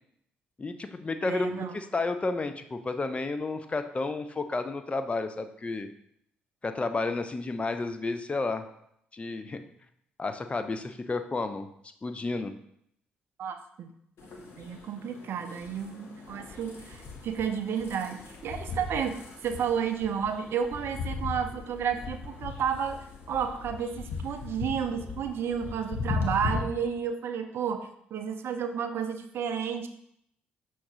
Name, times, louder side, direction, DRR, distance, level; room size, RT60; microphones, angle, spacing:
voice 1, 0.6-5.9 6.6-8.7 9.1-9.6 10.2-11.7 12.0-12.5, left 3 dB, 25° left, 9 dB, 0.4 m, -31 dB
voice 2, 1.2-1.7 13.4-13.9 14.6-23.0 23.3-29.9, right 7 dB, 50° right, 7 dB, 0.4 m, -31 dB
sound 1, 14.2-26.6, left 4 dB, 50° left, 0.7 m, -38 dB
5.7 x 3.1 x 2.7 m, 0.72 s
figure-of-eight pair, 45°, 5 cm